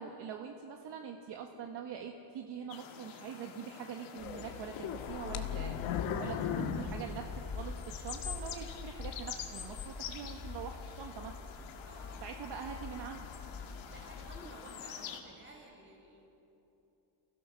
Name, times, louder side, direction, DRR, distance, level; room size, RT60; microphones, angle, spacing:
voice 1, 0.0-11.4 12.2-13.3, right 7 dB, 55° right, 3 dB, 1.5 m, -44 dB
sound 1, 2.7-15.2, left 8 dB, 70° left, 2.5 m, -47 dB
sound 2, 4.2-7.9 8.4-8.5 9.1-9.2, left 8 dB, 90° left, 1.6 m, -37 dB
sound 3, 6.3-14.7, left 4 dB, 45° left, 3.6 m, -45 dB
voice 2, 11.8-12.2 13.9-16.4, right 1 dB, 25° right, 0 dB, 5.6 m, -54 dB
30.0 x 16.5 x 6.3 m, 2.9 s
cardioid pair, 160°, 49 cm